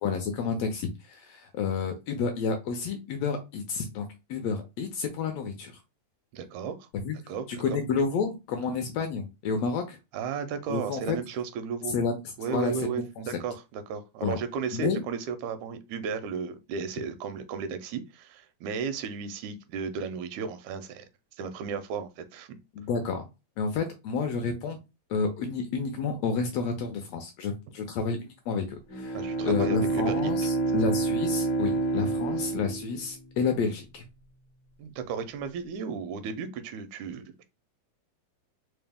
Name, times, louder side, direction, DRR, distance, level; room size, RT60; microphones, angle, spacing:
voice 1, 0.0-5.8 6.9-7.2 7.5-10.0 10.7-11.2 11.9-13.2 14.2-14.4 14.7-15.0 22.7-23.2 23.6-24.8 25.1-34.0, left 5 dB, 80° left, 1.6 m, -30 dB
voice 2, 6.3-6.9 7.3-7.6 10.1-11.9 12.4-21.1 21.3-22.5 29.1-30.3 34.8-37.4, right 6 dB, 85° right, 2.0 m, -34 dB
Bowed string instrument, 28.9-33.5, right 3 dB, 65° left, 1.2 m, -28 dB
4.6 x 2.0 x 3.4 m
omnidirectional pair, 3.3 m